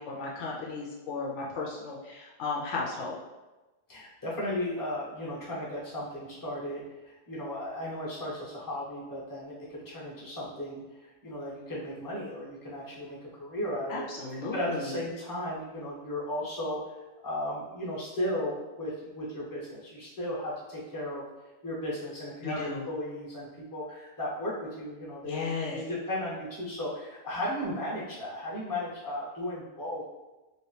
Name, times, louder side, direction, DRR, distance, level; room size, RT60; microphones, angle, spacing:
voice 1, 0.0-3.2 13.9-14.9 22.4-22.8 25.3-25.8, left 4 dB, 70° left, -3 dB, 0.8 m, -35 dB
voice 2, 3.9-6.8 7.0-10.8 11.2-21.2 21.6-30.0, left 1 dB, 20° left, -6 dB, 0.8 m, -35 dB
3.0 x 2.8 x 3.1 m, 1.1 s
omnidirectional pair, 1.3 m